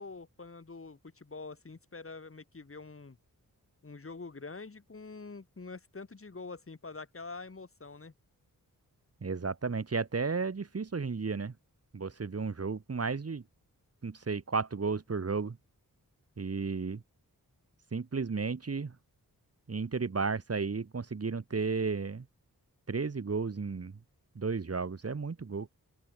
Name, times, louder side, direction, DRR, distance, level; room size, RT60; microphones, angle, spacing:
voice 1, 0.0-3.2 3.8-8.1, left 3 dB, 40° left, 5.7 m, -45 dB
voice 2, 9.2-11.5 11.9-13.4 14.0-15.6 16.4-17.0 17.9-19.0 19.7-22.3 22.9-24.0 24.4-25.7, right 4 dB, 45° right, 2.2 m, -33 dB
open air
wide cardioid pair, 135°, 35 cm